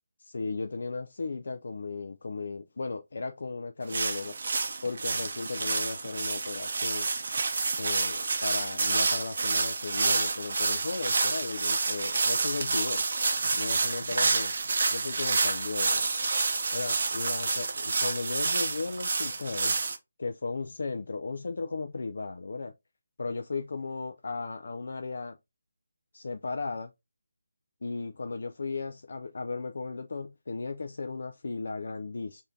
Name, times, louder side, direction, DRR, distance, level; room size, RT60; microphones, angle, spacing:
voice 1, 0.2-4.4 4.8-7.1 7.8-13.1 13.5-14.5 14.9-16.0 16.7-19.8 20.2-22.7 23.2-25.4 26.1-26.9 27.8-32.4, left 4 dB, 65° left, 0.4 m, -35 dB
sound 1, 3.9-20.0, right 4 dB, 55° right, 0.6 m, -28 dB
4.8 x 2.7 x 2.6 m
figure-of-eight pair, 165°, 0 cm